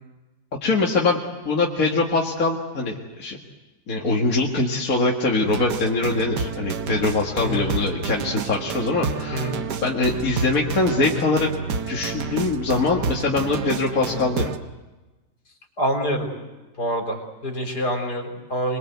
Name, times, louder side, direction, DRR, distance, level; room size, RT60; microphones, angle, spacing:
voice 1, 0.6-1.2 1.5-3.4 3.9-9.5 9.8-11.5 11.9-14.5, left 3 dB, 55° left, -1 dB, 2.3 m, -23 dB
sound 1, 5.5-14.6, right 5 dB, 80° right, 1.7 m, -30 dB
voice 2, 7.4-7.7 9.3-9.6 15.8-16.3 16.8-18.8, equal, 75° left, 4 dB, 4.5 m, -26 dB
27.0 x 21.5 x 8.1 m, 1.1 s
omnidirectional pair, 1.8 m